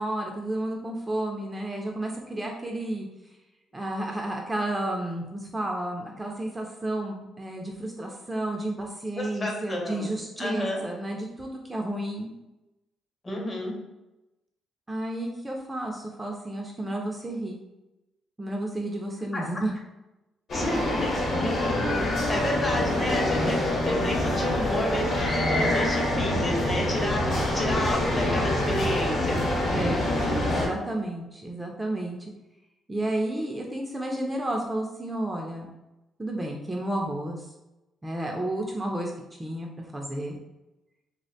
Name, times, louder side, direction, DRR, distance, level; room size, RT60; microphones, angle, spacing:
voice 1, 0.0-3.1 3.7-12.3 14.9-17.6 18.4-19.7 29.7-30.1 30.5-32.3 32.9-35.7 36.2-37.5 38.0-40.4, right 1 dB, 15° right, 0 dB, 0.4 m, -31 dB
voice 2, 9.2-10.1 10.4-10.8 13.2-13.8 19.3-19.5 20.5-21.8 22.3-29.4, left 1 dB, 25° left, 0 dB, 0.7 m, -31 dB
sound 1, 20.5-30.7, left 1 dB, 55° left, 0.9 m, -25 dB
2.3 x 2.1 x 2.7 m, 0.97 s
cardioid pair, 90°, 0 cm